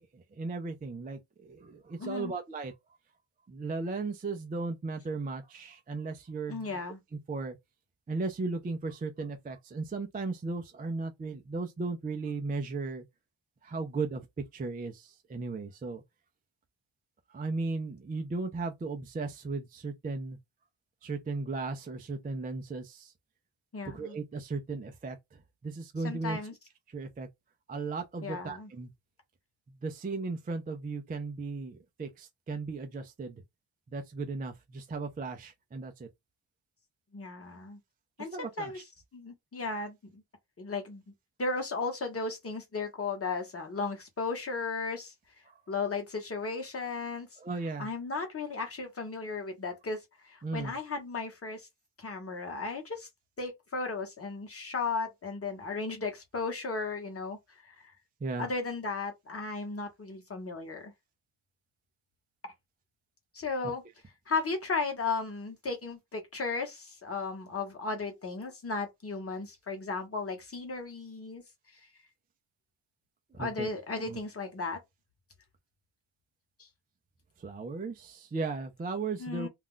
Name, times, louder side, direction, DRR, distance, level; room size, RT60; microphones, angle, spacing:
voice 1, 0.4-1.2 1.5-2.7 3.5-6.6 7.3-7.6 8.1-13.0 13.6-14.2 14.5-16.0 17.3-20.4 21.0-23.1 23.9-25.2 25.6-26.4 26.9-27.3 27.7-28.9 29.8-33.3 33.9-36.1 38.3-38.7 47.4-47.9 50.4-50.7 58.2-58.5 73.4-73.7 74.0-74.2 77.4-79.5, right 3 dB, 20° right, 0.3 m, -36 dB
voice 2, 2.0-2.3 6.5-7.0 23.7-24.2 26.0-26.5 28.2-28.7 37.1-37.8 38.2-38.9 39.1-40.2 40.6-41.0 41.4-45.1 45.7-47.3 47.8-51.7 52.0-53.1 53.4-57.4 57.7-57.8 58.4-60.9 63.3-63.8 64.3-71.4 73.4-74.8 79.2-79.5, left 4 dB, 30° left, 1.0 m, -35 dB
2.5 x 2.2 x 3.6 m
wide cardioid pair, 135°, 48 cm